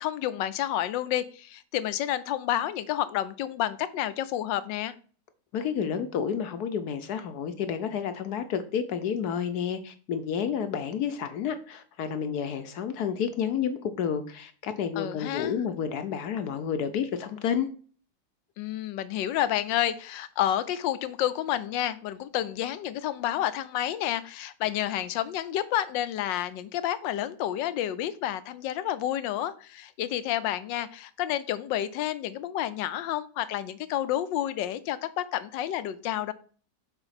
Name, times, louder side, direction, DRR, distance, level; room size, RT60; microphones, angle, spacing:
voice 1, 0.0-4.9 15.0-15.5 18.6-36.3, left 12 dB, 85° left, 15 dB, 1.3 m, -30 dB
voice 2, 5.5-17.7, left 7 dB, 65° left, 10 dB, 1.1 m, -30 dB
7.0 x 4.0 x 5.7 m, 0.42 s
omnidirectional pair, 2.0 m